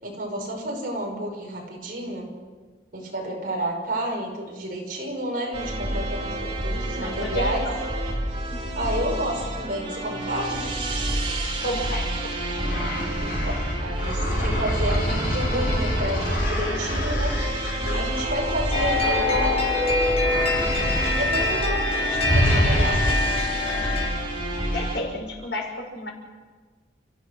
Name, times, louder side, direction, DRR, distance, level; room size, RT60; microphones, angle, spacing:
voice 1, 0.0-2.3 2.9-7.6 8.8-10.6 13.2-17.4 17.7-19.7 20.6-23.0, right 1 dB, 55° right, 0 dB, 5.7 m, -30 dB
sound 1, 5.5-25.0, right 1 dB, 30° right, 3.1 m, -29 dB
voice 2, 6.7-7.8 8.5-8.9 11.6-12.5 24.7-26.1, left 1 dB, 75° left, 1 dB, 5.8 m, -32 dB
sound 2, 12.6-19.8 20.2-21.4 21.7-21.9 22.2-23.3, equal, 60° left, 7.2 m, -27 dB
sound 3, 18.7-24.1, left 2 dB, 35° left, 5.7 m, -25 dB
29.5 x 15.0 x 6.6 m, 1.4 s
head